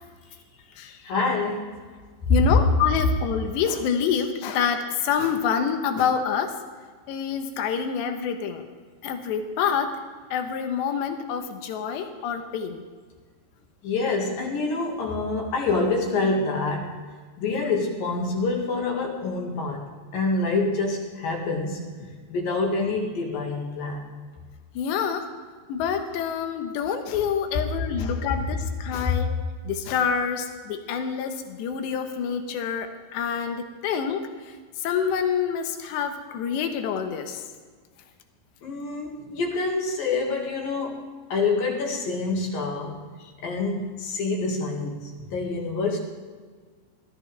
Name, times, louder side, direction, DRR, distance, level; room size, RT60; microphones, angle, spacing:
voice 1, 1.0-1.7 2.3-2.4 13.8-16.9 17.4-19.8 20.1-24.0 29.0-29.1 38.6-41.0 41.3-43.0 43.4-46.0, left 3 dB, 60° left, 1 dB, 3.4 m, -26 dB
voice 2, 2.3-6.5 7.1-8.6 9.0-9.9 10.3-12.8 24.8-25.3 25.7-29.3 29.6-34.2 34.8-37.4, left 7 dB, 75° left, 6 dB, 3.3 m, -27 dB
19.5 x 14.0 x 3.5 m, 1.5 s
omnidirectional pair, 5.1 m